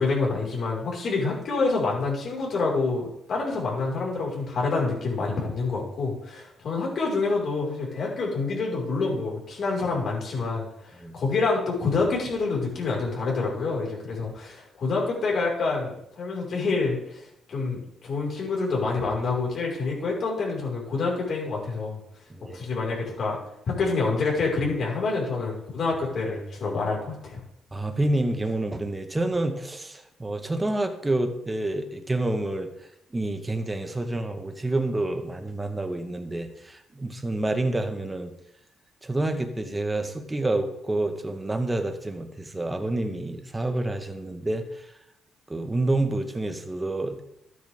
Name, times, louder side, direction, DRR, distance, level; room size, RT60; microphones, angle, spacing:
voice 1, 0.0-22.0 22.5-23.4 23.7-27.4, left 3 dB, 55° left, -2 dB, 5.6 m, -27 dB
voice 2, 27.7-32.7 33.1-38.3 39.0-44.8 45.5-47.2, right 2 dB, 15° right, 6 dB, 1.6 m, -28 dB
13.0 x 9.8 x 3.8 m, 0.78 s
cardioid pair, 90°, 0 cm